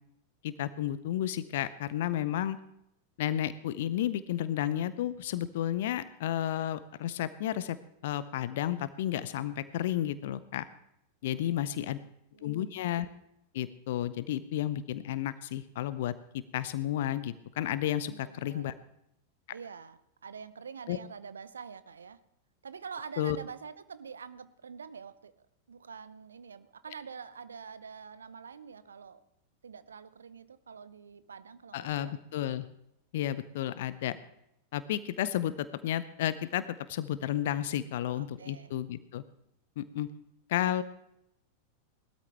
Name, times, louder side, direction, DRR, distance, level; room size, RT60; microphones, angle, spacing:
voice 1, 0.4-2.6 3.2-7.8 8.0-10.6 11.2-12.0 12.4-13.1 13.5-16.1 16.5-18.7 20.9-21.0 23.2-23.4 31.7-32.7 33.1-34.2 34.7-39.2 39.8-40.1 40.5-40.8, left 12 dB, 55° left, 15 dB, 0.6 m, -32 dB
voice 2, 11.3-12.1 12.3-12.6 18.0-18.7 19.5-22.2 22.6-25.3 25.7-29.2 29.6-32.1 38.0-38.7, right 6 dB, 70° right, 14 dB, 0.7 m, -46 dB
19.0 x 13.0 x 3.4 m, 0.80 s
figure-of-eight pair, 90°, 0 cm